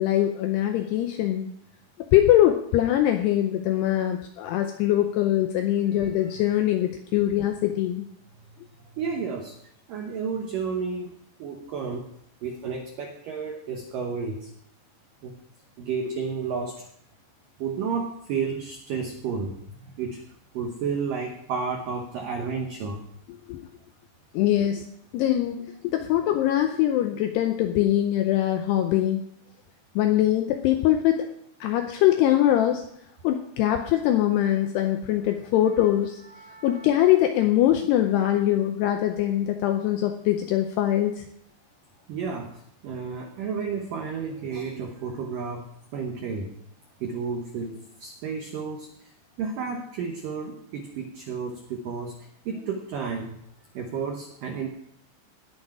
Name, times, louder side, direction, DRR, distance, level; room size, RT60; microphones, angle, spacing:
voice 1, 0.0-1.5 2.1-8.1 23.5-23.7 24.3-24.8 25.1-29.2 30.0-31.3 31.6-32.8 33.2-36.2 36.6-41.3, left 12 dB, 85° left, 6 dB, 2.4 m, -22 dB
voice 2, 6.0-6.6 9.0-9.6 9.9-11.1 11.4-12.1 12.4-14.5 15.2-15.4 15.8-16.9 17.6-20.2 20.5-23.1 35.8-35.9 36.2-37.0 42.1-46.5 47.0-53.4 53.7-54.7, right 5 dB, 85° right, 3 dB, 1.9 m, -32 dB
19.5 x 6.6 x 4.8 m, 0.71 s
omnidirectional pair, 5.5 m